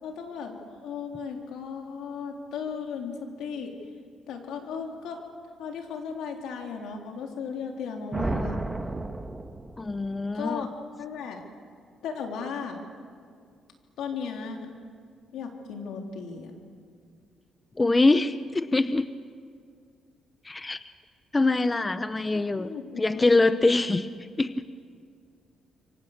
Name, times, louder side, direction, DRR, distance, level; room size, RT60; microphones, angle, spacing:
voice 1, 0.0-3.7 4.3-5.2 5.6-8.6 10.3-10.7 11.0-11.4 12.0-12.8 14.0-14.7 15.3-16.5 22.3-24.0, left 6 dB, 85° left, 2 dB, 3.6 m, -36 dB
sound 1, 8.1-10.1, right 2 dB, 15° right, 1.5 m, -32 dB
voice 2, 9.8-10.7 17.8-19.1 20.4-20.8 21.3-24.1 24.4-24.5, left 2 dB, 20° left, 12 dB, 0.8 m, -24 dB
28.0 x 24.0 x 6.7 m, 2.1 s
cardioid pair, 90°, 0 cm